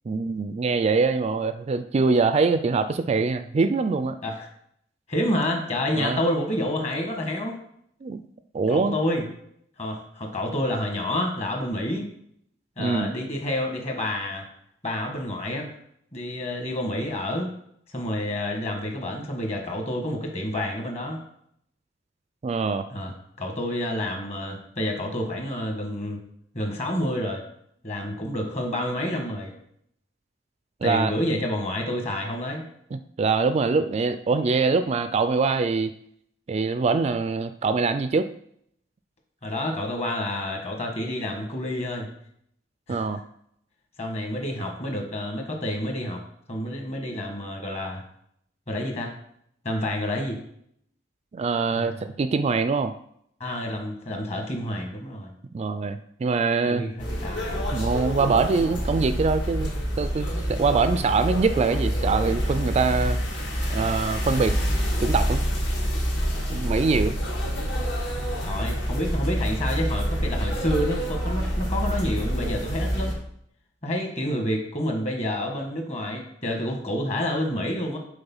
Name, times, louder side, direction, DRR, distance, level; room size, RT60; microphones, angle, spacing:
voice 1, 0.1-4.2 5.9-6.2 8.0-8.2 8.5-9.0 12.8-13.1 22.4-22.9 30.8-31.1 32.9-35.9 36.5-38.3 42.9-43.2 51.3-52.9 55.5-56.8 57.7-59.7 60.0-63.2 63.7-64.6 65.0-65.4 66.5-67.1, right 4 dB, 35° right, 10 dB, 0.3 m, -23 dB
voice 2, 5.1-7.6 8.7-9.2 9.8-12.0 12.8-14.4 14.8-15.7 16.1-17.5 17.9-21.2 22.9-26.2 26.5-27.4 27.8-29.5 30.8-32.6 39.4-42.1 42.9-43.1 44.0-46.2 46.5-48.0 48.7-49.1 49.6-50.4 51.7-52.1 53.4-55.3 56.7-57.6 68.4-73.2 73.8-78.0, left 1 dB, 35° left, 2 dB, 1.5 m, -29 dB
sound 1, 57.0-73.1, equal, 70° left, 1.9 m, -27 dB
6.9 x 4.2 x 5.5 m, 0.70 s
head